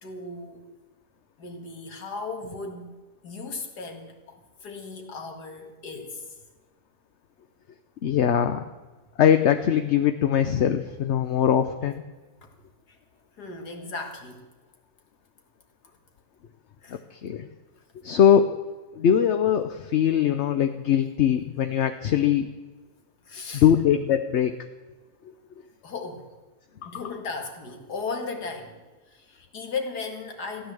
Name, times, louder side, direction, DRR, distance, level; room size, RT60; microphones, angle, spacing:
voice 1, 0.0-0.7 1.4-2.9 3.2-6.2 12.4-12.5 12.9-13.0 13.4-14.5 15.8-15.9 16.8-17.0 23.2-23.7 25.8-26.3 26.8-30.7, left 4 dB, 85° left, 3 dB, 2.5 m, -36 dB
voice 2, 8.0-8.7 9.2-12.0 17.2-17.5 18.0-18.5 19.0-22.5 23.5-24.5, left 9 dB, 55° left, 8 dB, 0.9 m, -21 dB
15.5 x 10.5 x 7.7 m, 1.3 s
omnidirectional pair, 1.7 m